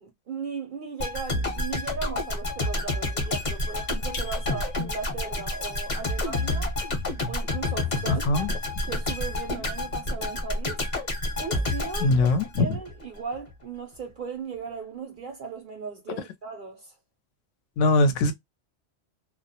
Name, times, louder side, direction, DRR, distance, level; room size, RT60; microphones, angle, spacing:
voice 1, 0.0-6.7 7.3-8.5 8.8-10.9 11.4-17.0, right 5 dB, 60° right, 0.5 m, -37 dB
sound 1, 1.0-13.0 13.3-13.5, left 2 dB, 40° left, 0.8 m, -29 dB
sound 2, 4.1-5.2, left 5 dB, 60° left, 0.4 m, -42 dB
voice 2, 8.1-8.5 12.0-12.8 17.8-18.3, left 2 dB, 85° left, 0.9 m, -21 dB
2.2 x 2.1 x 2.6 m
omnidirectional pair, 1.2 m